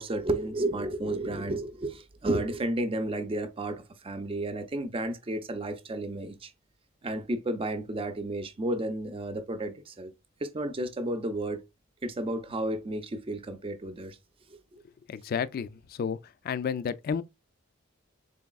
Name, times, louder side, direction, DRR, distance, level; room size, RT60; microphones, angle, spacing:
voice 1, 0.0-6.5 7.0-10.1 10.4-11.6 12.0-14.2 14.5-14.8, right 1 dB, 25° right, 0.5 m, -32 dB
voice 2, 15.1-16.2 16.4-17.2, left 6 dB, 45° left, 0.3 m, -31 dB
3.9 x 3.4 x 2.3 m
head